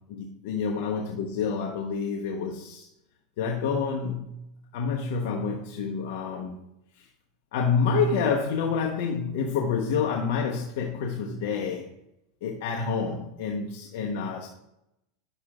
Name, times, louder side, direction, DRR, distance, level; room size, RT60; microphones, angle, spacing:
voice 1, 0.1-2.9 3.4-4.4 4.7-6.6 7.0-7.1 7.5-11.9 12.4-14.5, left 5 dB, 70° left, 0 dB, 1.1 m, -28 dB
11.0 x 6.7 x 2.5 m, 0.85 s
supercardioid pair, 120°, 0 cm